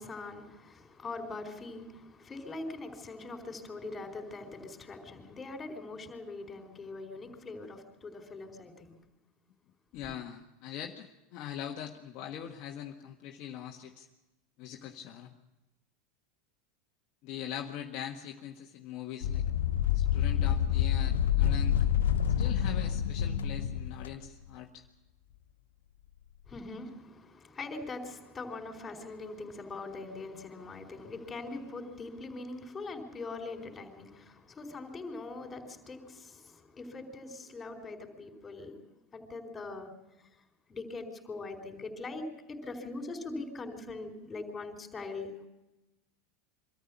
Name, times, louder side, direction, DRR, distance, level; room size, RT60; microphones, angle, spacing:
voice 1, 0.0-9.0 10.0-10.1 26.5-38.8 39.1-39.9 40.7-45.5, left 3 dB, 25° left, 5 dB, 4.6 m, -42 dB
voice 2, 9.9-14.1 14.6-15.3 17.2-19.4 19.9-21.8 22.3-24.8, left 10 dB, 55° left, 0 dB, 1.6 m, -42 dB
sound 1, 19.2-24.2, left 9 dB, 80° left, 0.9 m, -28 dB
24.5 x 14.0 x 8.5 m, 1.0 s
hypercardioid pair, 95°, 0 cm